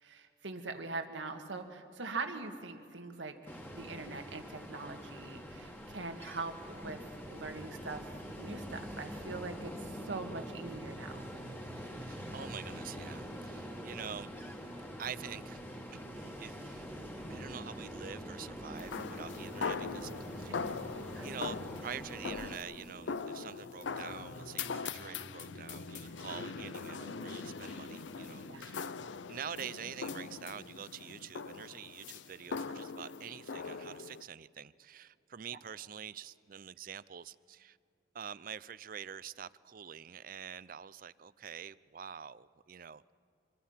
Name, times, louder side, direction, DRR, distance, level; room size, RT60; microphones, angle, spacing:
voice 1, 0.0-3.3 3.7-7.0 7.3-11.3 21.1-21.3 28.5-28.6 35.5-35.6, right 3 dB, 90° right, 1.8 m, -42 dB
Ocean, 3.5-22.6, equal, 10° left, 1.7 m, -45 dB
sound 1, 9.8-28.6, right 1 dB, 50° left, 3.7 m, -52 dB
voice 2, 12.0-14.3 15.0-15.6 15.9-16.9 17.3-20.7 21.2-28.9 29.3-37.8 38.1-43.1, right 8 dB, 50° right, 0.5 m, -46 dB
sound 2, 18.8-34.2, left 5 dB, 85° left, 0.6 m, -41 dB
26.0 x 22.0 x 5.7 m
head